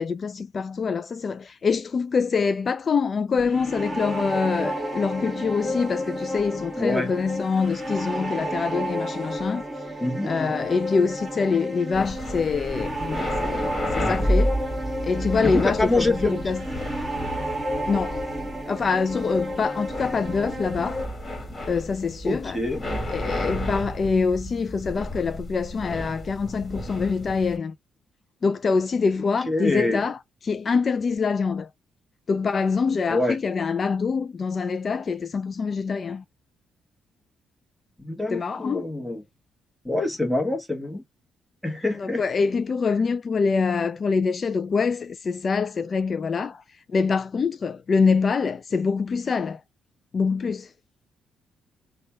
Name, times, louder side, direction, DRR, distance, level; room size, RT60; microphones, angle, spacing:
voice 1, 0.0-9.6 10.2-14.6 15.0-16.6 17.9-18.2 18.7-21.0 21.6-22.6 23.1-27.7 28.4-31.7 32.3-36.2 38.3-38.9 41.9-46.6 46.9-49.6 50.1-50.7, left 5 dB, 40° left, 0.3 m, -25 dB
passing by, 3.4-21.1, equal, 15° right, 1.3 m, -31 dB
voice 2, 6.8-7.1 10.0-10.6 15.4-16.4 22.2-22.8 29.5-30.0 33.1-33.4 38.0-39.2 39.8-41.0 41.6-42.2, left 2 dB, ahead, 1.3 m, -26 dB
sound 1, 11.9-27.6, equal, 25° left, 1.9 m, -31 dB
3.2 x 2.3 x 4.3 m
cardioid pair, 90°, 0 cm